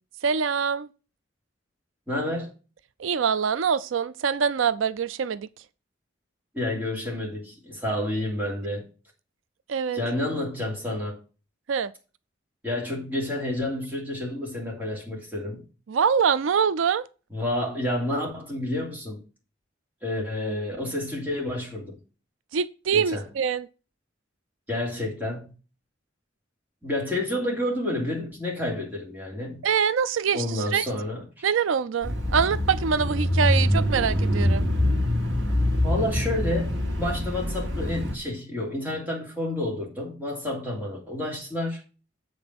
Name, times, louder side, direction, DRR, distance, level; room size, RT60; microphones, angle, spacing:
voice 1, 0.2-0.9 3.0-5.5 9.7-10.0 11.7-11.9 15.9-17.1 22.5-23.7 29.6-30.8 31.4-34.7, right 6 dB, 80° right, 0.4 m, -24 dB
voice 2, 2.1-2.5 6.5-8.8 9.9-11.2 12.6-15.6 17.3-19.2 20.0-21.9 22.9-23.2 24.7-25.5 26.8-29.6 30.3-31.5 35.8-41.8, left 1 dB, 10° right, 3.2 m, -29 dB
Bicycle / Mechanisms, 32.0-38.2, left 1 dB, 60° right, 2.5 m, -25 dB
7.8 x 5.4 x 5.9 m
head